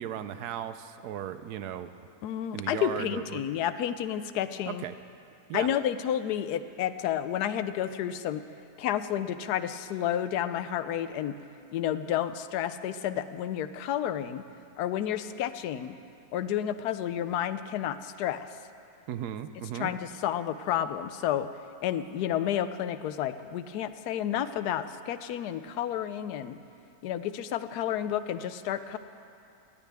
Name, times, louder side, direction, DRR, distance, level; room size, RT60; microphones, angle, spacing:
voice 1, 0.0-1.9 2.5-3.4 4.7-4.9 5.5-5.7 19.1-19.9, right 10 dB, 90° right, 11 dB, 1.2 m, -36 dB
voice 2, 2.2-4.8 5.5-8.4 8.8-11.4 11.7-14.4 14.8-16.0 16.3-18.5 19.7-21.5 21.8-26.6 27.0-29.0, left 10 dB, 85° left, 12 dB, 1.1 m, -31 dB
18.5 x 15.5 x 3.5 m, 2.5 s
omnidirectional pair, 1.7 m